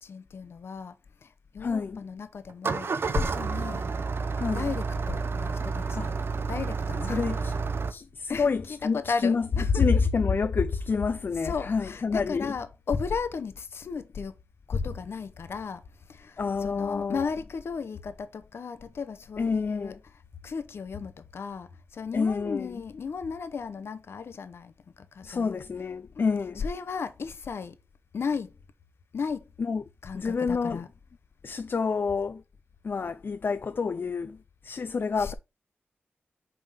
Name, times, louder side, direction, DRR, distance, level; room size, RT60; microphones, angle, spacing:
voice 1, 0.0-3.9 4.5-7.2 8.3-10.1 11.4-14.4 14.7-15.8 16.1-20.0 20.4-25.6 26.1-27.8 28.1-28.6 29.1-29.5 30.0-30.9 35.2-35.3, left 5 dB, 75° left, 0.8 m, -33 dB
voice 2, 1.6-2.0 4.4-4.7 5.9-6.1 7.1-7.5 7.9-9.5 9.7-12.5 16.4-17.3 19.4-20.0 22.1-22.8 25.2-26.5 29.6-29.8 30.1-30.8 31.4-32.4 32.8-34.4 34.6-35.3, left 5 dB, 55° left, 0.4 m, -29 dB
Engine starting, 2.5-7.9, right 4 dB, 65° right, 0.6 m, -30 dB
5.6 x 3.6 x 5.0 m
cardioid pair, 60°, 4 cm